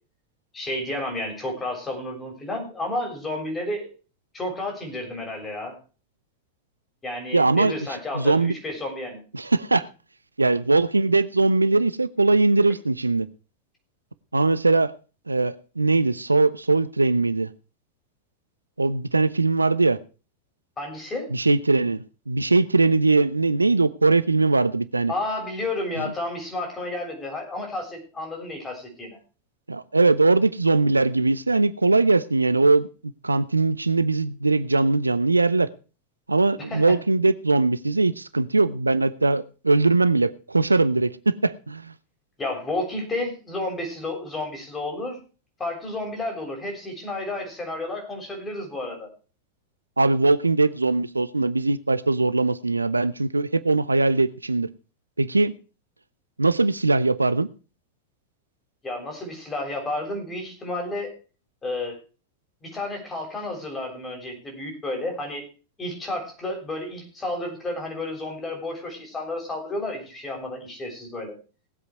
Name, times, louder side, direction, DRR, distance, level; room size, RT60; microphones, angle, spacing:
voice 1, 0.5-3.9 4.3-5.7 7.0-9.2 20.8-21.3 25.1-29.2 36.6-37.0 42.4-45.2 45.6-49.1 58.8-61.1 61.6-62.0 62.6-65.5 65.8-71.3, left 2 dB, 15° left, 7.0 m, -31 dB
voice 2, 7.3-7.7 8.1-8.6 9.3-9.9 10.4-13.3 14.3-14.9 15.3-17.5 18.8-20.0 21.3-25.1 26.0-26.1 29.7-32.9 33.2-35.7 36.3-41.9 50.0-54.7 55.2-55.5 56.4-57.5, right 3 dB, 80° right, 0.6 m, -21 dB
18.5 x 8.2 x 4.7 m
figure-of-eight pair, 90°, 0 cm